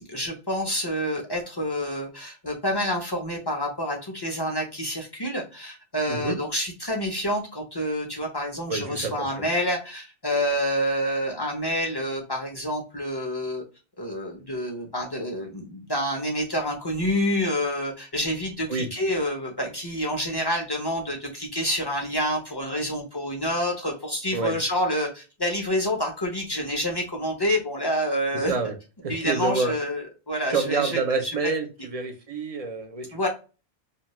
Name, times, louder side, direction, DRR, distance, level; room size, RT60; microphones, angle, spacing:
voice 1, 0.0-13.6 14.0-28.5 29.1-31.5 33.1-33.3, equal, 35° left, 1 dB, 0.4 m, -28 dB
voice 2, 6.1-6.4 8.7-9.4 18.7-18.9 24.3-24.5 28.3-28.7 29.0-29.7 30.5-33.2, right 4 dB, 50° right, 4 dB, 0.4 m, -27 dB
2.7 x 2.2 x 2.9 m, 0.32 s
omnidirectional pair, 1.1 m